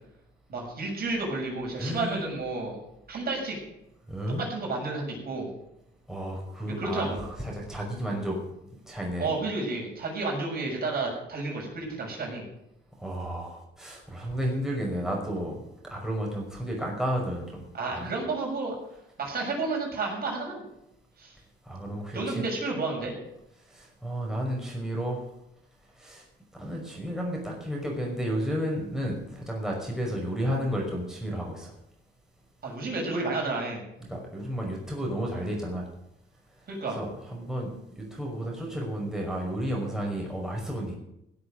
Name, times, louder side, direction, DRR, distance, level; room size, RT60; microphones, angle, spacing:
voice 1, 0.5-2.8 3.1-3.6 4.4-5.5 6.8-7.2 9.2-12.4 17.7-18.8 19.2-20.7 21.2-21.4 22.1-23.2 32.6-33.9 36.7-37.0, right 3 dB, 50° right, -2 dB, 7.2 m, -31 dB
voice 2, 1.8-2.2 4.1-4.4 6.1-8.4 8.9-9.3 13.0-15.6 15.8-17.6 17.9-18.1 21.6-22.5 23.7-25.2 26.0-26.2 26.5-31.7 34.1-35.9 36.9-41.0, equal, 5° right, -2 dB, 5.7 m, -32 dB
16.5 x 8.2 x 7.9 m, 0.81 s
cardioid pair, 90°, 20 cm